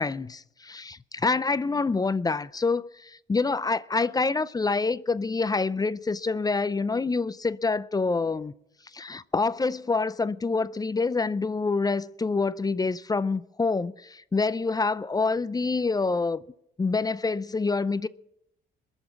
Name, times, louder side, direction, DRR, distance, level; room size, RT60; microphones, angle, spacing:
voice 1, 0.0-8.5 8.9-16.4 16.8-18.1, left 4 dB, 20° left, 0.5 m, -26 dB
21.5 x 7.1 x 7.3 m
cardioid pair, 90°, 20 cm